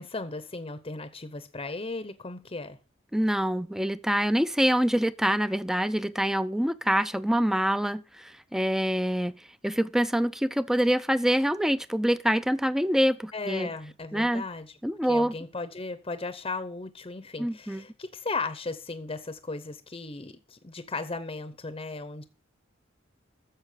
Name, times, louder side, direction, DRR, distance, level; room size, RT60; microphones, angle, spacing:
voice 1, 0.0-2.8 13.3-14.7 15.1-22.2, left 3 dB, 25° left, 0.8 m, -36 dB
voice 2, 3.1-9.3 9.6-13.7 14.1-14.4 14.8-15.3 17.4-17.8, equal, ahead, 0.5 m, -25 dB
12.5 x 7.3 x 6.7 m
head